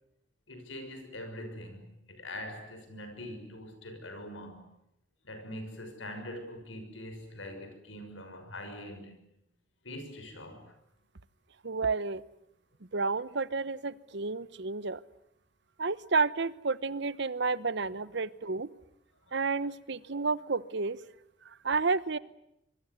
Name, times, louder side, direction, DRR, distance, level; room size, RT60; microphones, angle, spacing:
voice 1, 0.5-4.6 5.2-9.1 9.8-10.7 19.3-19.4, left 1 dB, 85° left, 6.1 m, -43 dB
voice 2, 11.6-12.2 12.9-15.0 15.8-18.7 19.3-21.0 21.4-22.2, right 4 dB, 65° right, 1.0 m, -31 dB
26.0 x 23.0 x 9.5 m
head